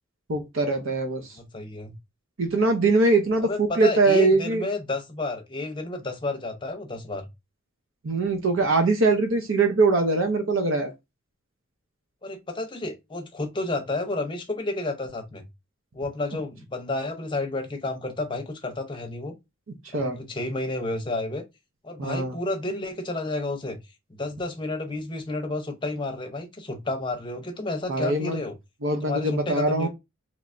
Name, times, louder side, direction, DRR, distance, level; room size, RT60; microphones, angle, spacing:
voice 1, 0.3-1.4 2.4-4.6 8.0-10.9 19.9-20.2 22.0-22.4 27.9-28.4 28.8-29.9, right 3 dB, 70° right, 0.7 m, -22 dB
voice 2, 1.4-1.9 3.4-7.2 12.2-15.5 15.9-19.3 19.9-21.4 21.8-23.8 24.1-28.5 29.0-29.9, left 2 dB, 25° left, 0.6 m, -31 dB
3.3 x 3.0 x 2.5 m
head